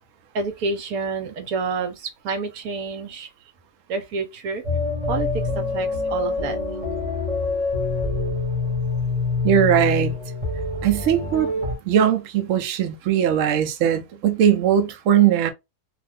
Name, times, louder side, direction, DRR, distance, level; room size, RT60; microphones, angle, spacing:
voice 1, 0.3-3.3 3.9-4.6 5.1-6.6, right 4 dB, 85° right, 1.2 m, -28 dB
sound 1, 4.6-11.8, left 3 dB, 30° right, 1.0 m, -25 dB
voice 2, 9.4-10.1 10.8-11.5 11.8-15.5, right 9 dB, 65° right, 0.9 m, -19 dB
2.6 x 2.4 x 3.2 m
omnidirectional pair, 1.5 m